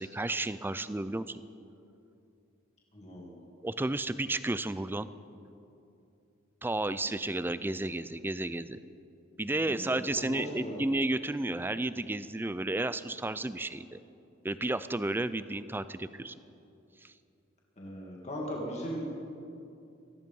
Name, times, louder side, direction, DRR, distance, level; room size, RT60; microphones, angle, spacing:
voice 1, 0.0-1.4 3.6-5.1 6.6-8.8 9.4-14.0 14.4-16.3 17.0-17.1, right 2 dB, 10° right, 14 dB, 0.4 m, -32 dB
voice 2, 2.9-3.3 9.6-10.8 17.8-19.1, equal, 35° left, -3 dB, 2.3 m, -38 dB
18.5 x 13.5 x 5.4 m, 2.7 s
head